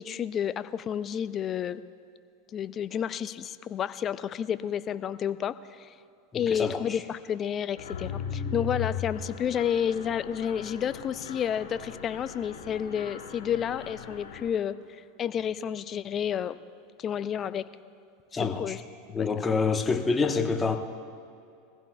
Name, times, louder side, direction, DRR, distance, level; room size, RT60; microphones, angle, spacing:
voice 1, 0.0-1.8 2.5-5.9 6.3-16.6 17.0-17.7 18.3-18.8 19.2-19.3, left 8 dB, 35° left, 15 dB, 0.5 m, -30 dB
voice 2, 6.3-6.8 18.3-18.8 19.1-20.8, left 4 dB, 20° left, 5 dB, 1.1 m, -27 dB
Mechanisms, 7.8-14.5, left 6 dB, 80° left, 2.2 m, -38 dB
21.5 x 15.5 x 2.3 m, 2.5 s
hypercardioid pair, 90°, 0 cm